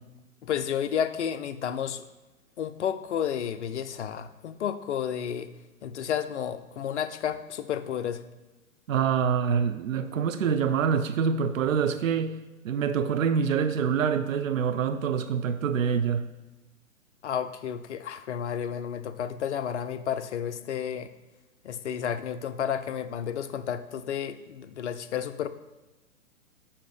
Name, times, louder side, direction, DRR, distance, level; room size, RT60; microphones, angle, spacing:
voice 1, 0.4-2.1 2.6-5.5 5.8-8.2 17.2-21.1 21.6-25.5, left 8 dB, 55° left, 11 dB, 0.5 m, -31 dB
voice 2, 8.9-12.4 12.6-16.3, right 7 dB, 70° right, 9 dB, 0.5 m, -26 dB
6.7 x 2.8 x 5.1 m, 1.1 s
figure-of-eight pair, 125°, 42 cm